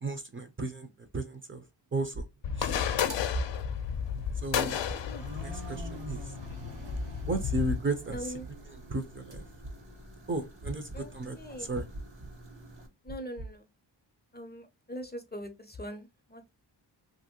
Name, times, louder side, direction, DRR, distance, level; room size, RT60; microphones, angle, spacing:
voice 1, 0.0-0.9 1.1-1.6 1.9-2.2 2.6-2.7 4.4-4.8 5.4-6.2 7.3-8.3 8.9-9.4 10.3-11.9, right 2 dB, 30° right, 0.5 m, -34 dB
sound 1, 2.1-2.5 3.3-3.7 4.6-5.0 5.8-6.1 6.9-7.3 8.1-8.5 9.3-9.7 10.6-11.0 11.9-12.3 13.1-13.5, right 2 dB, 60° right, 1.1 m, -39 dB
sound 2, 2.4-7.8, left 8 dB, 85° left, 0.5 m, -32 dB
sound 3, 2.9-12.9, right 1 dB, 80° right, 1.3 m, -47 dB
voice 2, 8.1-8.5 10.9-11.7 13.0-13.7 14.3-16.5, equal, 25° left, 0.5 m, -42 dB
2.9 x 2.6 x 2.7 m
wide cardioid pair, 85°, 43 cm